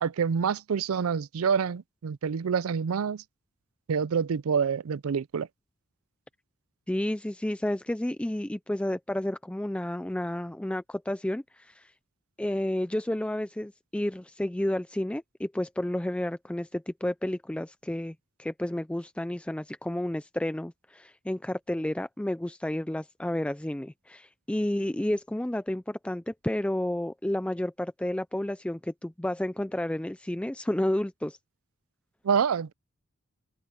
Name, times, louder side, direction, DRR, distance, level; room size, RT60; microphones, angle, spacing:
voice 1, 0.0-3.2 3.9-5.5 32.2-32.7, right 6 dB, 85° right, 0.4 m, -27 dB
voice 2, 6.9-11.9 12.4-31.4, left 1 dB, 5° left, 0.3 m, -31 dB
open air
head